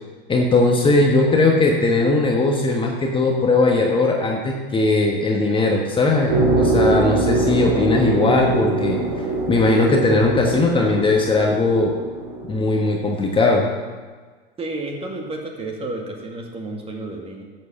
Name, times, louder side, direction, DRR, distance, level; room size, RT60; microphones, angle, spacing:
voice 1, 0.3-9.0 9.5-11.9 12.5-13.7, left 2 dB, 15° left, 0 dB, 1.4 m, -18 dB
sound 1, 6.3-12.6, right 2 dB, 55° right, 3.2 m, -23 dB
voice 2, 14.6-17.4, right 2 dB, 20° right, 1 dB, 2.2 m, -31 dB
11.5 x 7.8 x 5.8 m, 1.4 s
hypercardioid pair, 90°, 29 cm